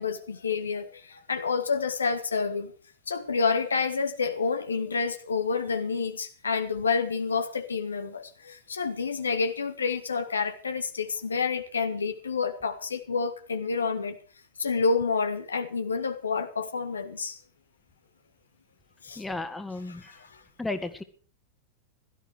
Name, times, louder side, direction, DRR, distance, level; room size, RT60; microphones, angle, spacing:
voice 1, 0.0-2.7 3.1-14.2 14.6-17.4 19.0-19.2 19.8-20.4, left 5 dB, 75° left, 1.6 m, -29 dB
voice 2, 19.2-20.0 20.6-21.0, left 2 dB, 10° left, 2.0 m, -33 dB
16.5 x 13.5 x 4.8 m
figure-of-eight pair, 90°, 0 cm